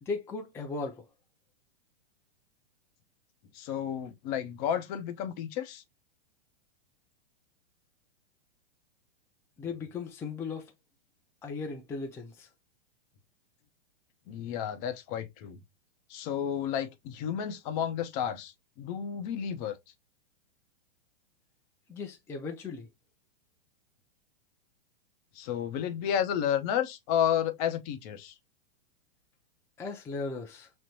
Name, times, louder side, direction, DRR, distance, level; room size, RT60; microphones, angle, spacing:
voice 1, 0.0-1.1 9.6-10.7 11.4-12.5 21.9-22.9 29.8-30.7, left 4 dB, 10° left, 0.4 m, -37 dB
voice 2, 3.5-5.8 14.3-15.6 16.1-19.8 25.3-28.3, left 9 dB, 40° left, 0.7 m, -31 dB
6.1 x 2.1 x 2.7 m
hypercardioid pair, 120°, 30 cm